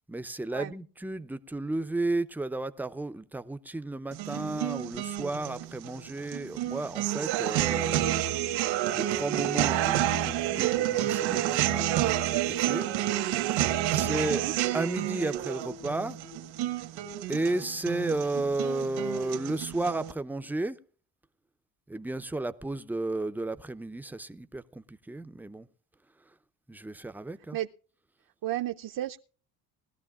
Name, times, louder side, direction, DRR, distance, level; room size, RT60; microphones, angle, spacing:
voice 1, 0.1-8.2 8.9-12.9 13.5-14.5 14.7-16.2 17.3-20.8 21.9-25.7 26.7-27.6, right 2 dB, 5° right, 0.5 m, -33 dB
sound 1, 4.1-20.1, right 12 dB, 80° right, 1.5 m, -29 dB
voice 2, 14.1-14.5 27.5-27.7 28.4-29.2, right 14 dB, 50° right, 0.6 m, -33 dB
20.5 x 13.0 x 2.4 m
cardioid pair, 105°, 45 cm